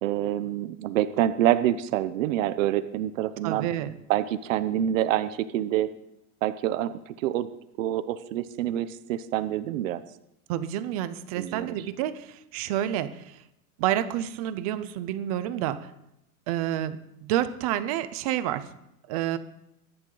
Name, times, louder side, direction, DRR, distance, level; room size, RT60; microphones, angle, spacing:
voice 1, 0.0-3.7 4.1-5.9 6.4-7.5 7.8-10.0 11.4-11.8, right 12 dB, 60° right, 12 dB, 0.9 m, -26 dB
voice 2, 3.4-3.9 10.5-13.4 13.8-15.9 16.5-18.7 19.1-19.4, right 12 dB, 25° right, 13 dB, 0.5 m, -29 dB
23.0 x 10.5 x 3.9 m, 0.83 s
supercardioid pair, 175°, 43 cm